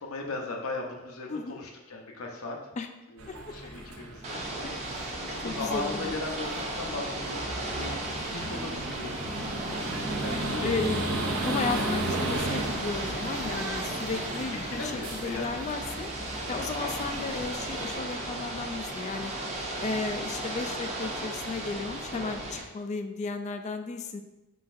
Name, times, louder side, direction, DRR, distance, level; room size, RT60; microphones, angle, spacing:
voice 1, 0.0-2.6 3.1-4.7 5.3-8.0 8.3-9.2 10.2-10.7 14.6-15.6, left 3 dB, 80° left, 1 dB, 0.8 m, -37 dB
voice 2, 1.3-1.6 2.8-2.9 3.3-3.4 4.6-6.1 10.6-11.0 11.3-16.1 16.5-19.3 19.8-24.2, left 4 dB, 35° left, 7 dB, 0.3 m, -34 dB
sound 1, 3.2-17.9, right 1 dB, 75° right, 0.7 m, -35 dB
Ocean / Boat Water vehicle, 4.2-22.6, right 1 dB, 30° right, 0.7 m, -36 dB
5.1 x 3.9 x 2.5 m, 1.0 s
head